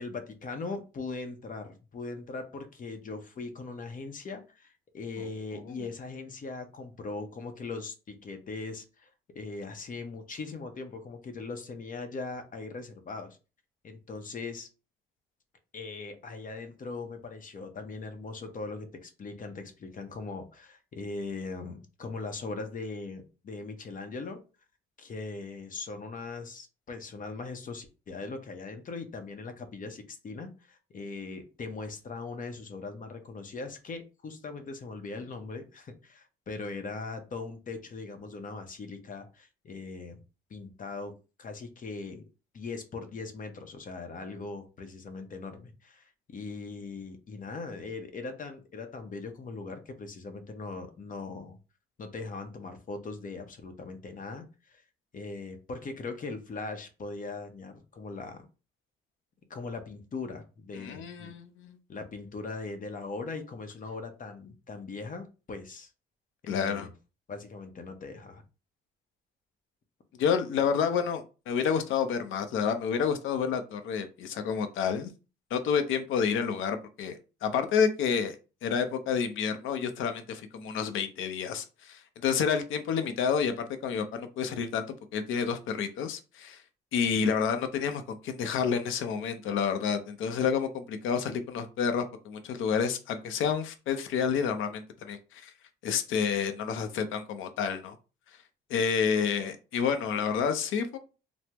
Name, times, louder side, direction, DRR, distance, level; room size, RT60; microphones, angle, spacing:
voice 1, 0.0-9.1 9.3-13.4 13.8-14.7 15.7-24.4 25.0-40.2 40.5-42.2 42.5-51.6 52.0-54.8 55.1-58.4 59.5-61.3 61.9-65.9 66.4-66.9 67.3-68.4, left 3 dB, 40° left, 6 dB, 0.7 m, -40 dB
voice 2, 5.2-5.7 60.8-61.8 66.5-66.9 70.2-75.1 75.5-78.4 78.6-86.6 86.9-95.5 95.8-98.0 98.7-101.0, left 6 dB, 80° left, 8 dB, 0.6 m, -29 dB
3.4 x 2.0 x 2.8 m, 0.32 s
cardioid pair, 90°, 20 cm